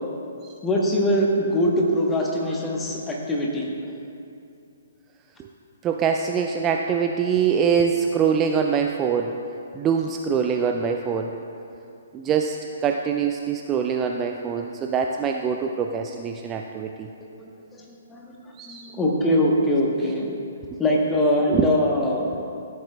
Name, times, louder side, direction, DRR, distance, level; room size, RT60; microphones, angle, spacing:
voice 1, 0.6-3.7 17.4-17.8 18.1-18.3 18.7-20.4 20.8-22.3, left 1 dB, 10° left, -1 dB, 1.0 m, -22 dB
voice 2, 5.8-9.3 9.8-11.3 12.1-17.1 18.6-18.8 21.5-21.7, right 7 dB, 20° right, 3 dB, 0.3 m, -24 dB
14.0 x 7.6 x 2.3 m, 2.6 s
figure-of-eight pair, 125°, 0 cm